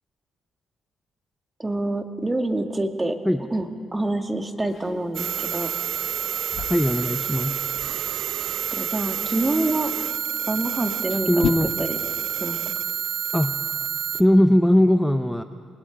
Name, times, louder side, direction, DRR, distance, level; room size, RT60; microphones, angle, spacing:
voice 1, 1.6-3.2 3.5-5.7 8.7-9.9 10.5-11.3 11.8-12.0 12.4-12.6, right 2 dB, 15° right, 6 dB, 1.8 m, -26 dB
sound 1, 4.7-11.5, left 9 dB, 70° left, 1.0 m, -37 dB
sound 2, 5.1-14.2, right 10 dB, 75° right, 0.6 m, -28 dB
voice 2, 6.7-7.6 11.3-11.7 13.3-13.6 14.1-15.4, equal, 5° left, 8 dB, 0.7 m, -19 dB
28.5 x 20.0 x 5.1 m, 2.3 s
cardioid pair, 90°, 0 cm